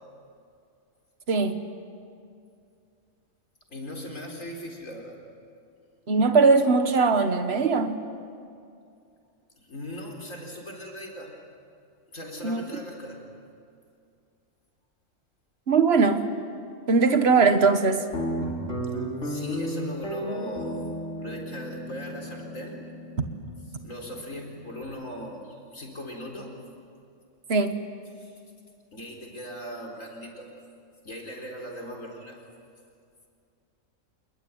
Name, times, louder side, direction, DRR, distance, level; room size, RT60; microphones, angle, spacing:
voice 1, 3.7-5.2 9.6-11.4 12.1-13.2 19.2-22.8 23.8-26.6 28.1-28.4 28.9-30.5 31.0-32.4, equal, 90° left, 0 dB, 4.7 m, -39 dB
voice 2, 6.1-8.0 12.4-12.6 15.7-16.2 16.9-18.0 27.5-27.7, right 4 dB, 55° right, 8 dB, 1.7 m, -20 dB
Guitar, 18.1-24.8, equal, 70° left, 4.5 m, -34 dB
27.0 x 21.5 x 9.5 m, 2.4 s
omnidirectional pair, 1.3 m